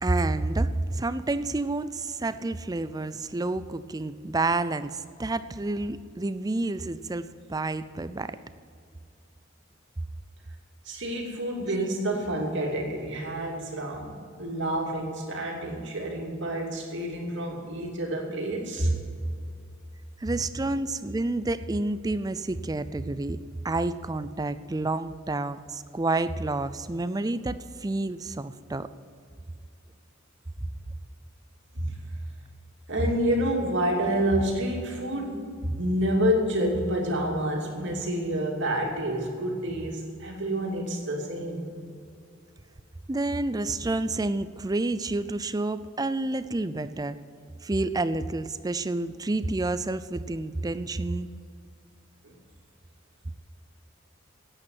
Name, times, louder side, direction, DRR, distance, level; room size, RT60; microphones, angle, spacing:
voice 1, 0.0-8.4 20.2-23.4 23.6-28.9 43.1-47.2 47.6-51.3, right 2 dB, 20° right, 13 dB, 0.4 m, -29 dB
voice 2, 10.8-19.0 31.7-32.0 32.9-41.7 52.2-52.3, right 1 dB, 60° right, 0 dB, 2.7 m, -28 dB
10.5 x 9.0 x 9.4 m, 2.4 s
head